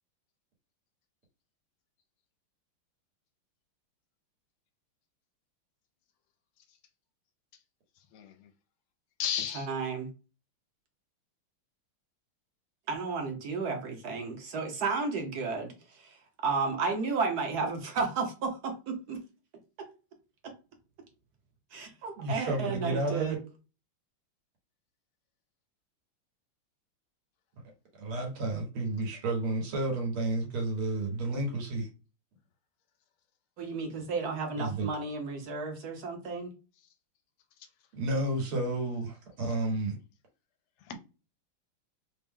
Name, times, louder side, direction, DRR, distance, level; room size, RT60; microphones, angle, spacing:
voice 1, 8.1-8.5 9.2-9.7 37.6-37.7 40.8-40.9, left 10 dB, 90° left, 1.5 m, -34 dB
voice 2, 9.5-10.1 12.9-16.2 16.4-19.2 19.8-19.9 20.4-20.5 21.7-23.4 33.6-36.5, right 4 dB, 65° right, 1.0 m, -33 dB
voice 3, 22.2-23.4 28.0-31.9 34.6-34.9 38.0-40.0, right 2 dB, 90° right, 2.2 m, -31 dB
4.3 x 2.0 x 3.6 m
omnidirectional pair, 2.3 m